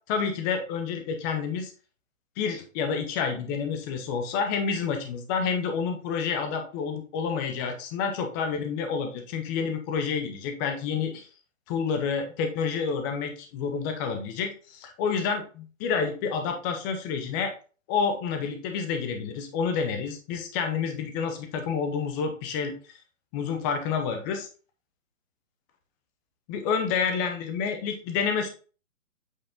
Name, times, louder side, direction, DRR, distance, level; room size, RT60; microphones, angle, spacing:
voice 1, 0.1-1.7 2.4-11.3 11.7-17.5 17.9-22.7 23.3-24.5 26.5-28.5, left 6 dB, 15° left, 6 dB, 0.7 m, -29 dB
8.1 x 4.1 x 3.6 m, 0.37 s
hypercardioid pair, 145°, 40 cm